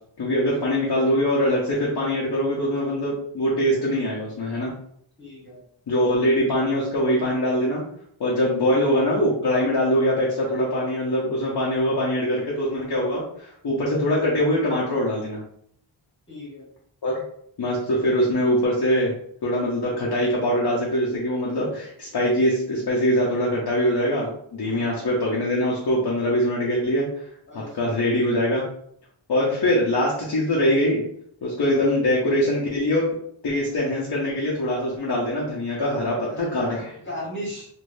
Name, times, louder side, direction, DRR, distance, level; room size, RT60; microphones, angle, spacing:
voice 1, 0.2-4.7 5.9-7.8 8.2-15.4 17.0-17.2 17.6-19.1 19.4-27.1 27.7-28.6 29.3-31.0 31.4-33.1 33.4-36.9, equal, 50° left, -4 dB, 0.8 m, -23 dB
voice 2, 5.2-5.6 9.1-9.4 16.3-16.7 24.6-25.1 27.5-28.3 31.6-31.9 36.3-37.7, left 1 dB, 25° left, -6 dB, 1.3 m, -38 dB
3.3 x 2.6 x 2.6 m, 0.67 s
wide cardioid pair, 150°, 48 cm